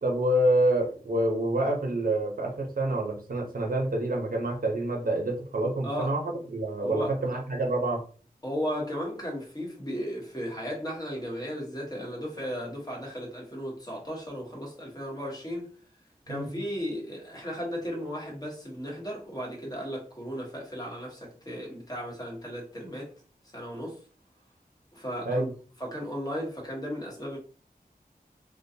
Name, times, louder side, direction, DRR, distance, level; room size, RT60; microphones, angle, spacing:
voice 1, 0.0-8.0 16.3-16.6 25.2-25.5, right 1 dB, 65° right, 0.7 m, -27 dB
voice 2, 6.8-7.4 8.4-15.7 16.3-23.1 23.5-24.0 24.9-25.5 25.8-27.4, equal, 25° left, 1.0 m, -35 dB
2.4 x 2.2 x 2.6 m
wide cardioid pair, 70°, 16 cm